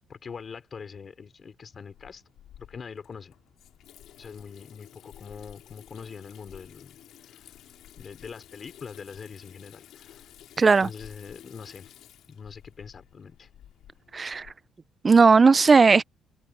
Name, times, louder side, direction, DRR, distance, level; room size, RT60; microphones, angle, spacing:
voice 1, 0.1-2.2 2.7-3.3 4.2-7.6 8.0-10.3 10.8-11.9 12.3-13.5, left 6 dB, 45° left, 5.0 m, -43 dB
Water tap faucet / Sink (filling or washing), 1.9-14.5, left 11 dB, 80° left, 2.8 m, -52 dB
voice 2, 10.6-10.9 14.1-14.5 15.0-16.0, right 4 dB, 35° right, 0.4 m, -17 dB
open air
cardioid pair, 90°, 0 cm